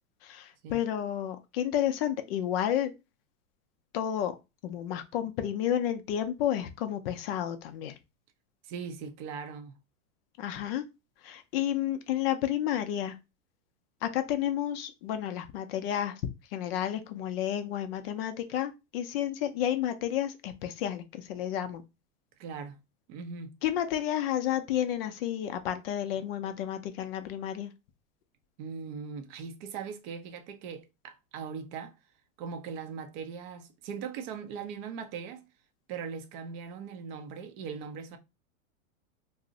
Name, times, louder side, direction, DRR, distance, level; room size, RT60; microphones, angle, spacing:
voice 1, 0.2-2.9 3.9-4.3 4.6-7.9 10.4-10.9 11.2-13.2 14.0-16.2 16.5-21.8 23.6-27.7, left 11 dB, 45° left, 0.4 m, -31 dB
voice 2, 8.6-9.8 22.4-22.8 23.1-23.5 28.6-32.0 32.4-35.5 35.9-38.2, right 6 dB, 35° right, 0.4 m, -40 dB
2.5 x 2.0 x 3.7 m
supercardioid pair, 135°, 43 cm